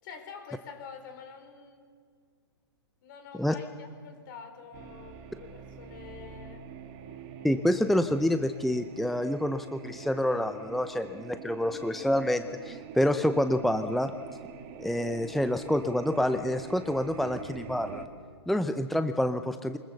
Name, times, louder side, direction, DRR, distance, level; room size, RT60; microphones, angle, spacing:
voice 1, 0.0-1.9 3.0-6.7, left 6 dB, 50° left, 7 dB, 4.6 m, -47 dB
sound 1, 4.7-18.1, right 6 dB, 35° right, 2.4 m, -45 dB
voice 2, 7.4-14.1 14.8-18.0 18.5-19.8, left 1 dB, ahead, 9 dB, 0.6 m, -27 dB
24.0 x 21.0 x 7.1 m, 2.1 s
hypercardioid pair, 125°, 14 cm